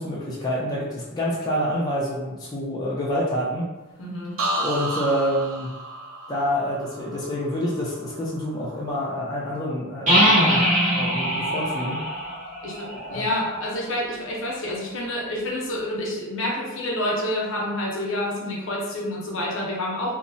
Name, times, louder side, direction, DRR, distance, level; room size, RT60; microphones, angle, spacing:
voice 1, 0.0-3.6 4.6-5.7 6.3-12.0 13.0-13.3, equal, 20° left, -6 dB, 0.4 m, -27 dB
voice 2, 4.0-4.4 12.6-20.2, left 1 dB, 65° left, -3 dB, 0.7 m, -28 dB
sound 1, 4.4-8.2 8.6-9.0, right 1 dB, 75° right, 0.5 m, -32 dB
sound 2, 10.1-13.7, equal, 35° right, 0.8 m, -22 dB
2.8 x 2.0 x 2.5 m, 1.0 s
head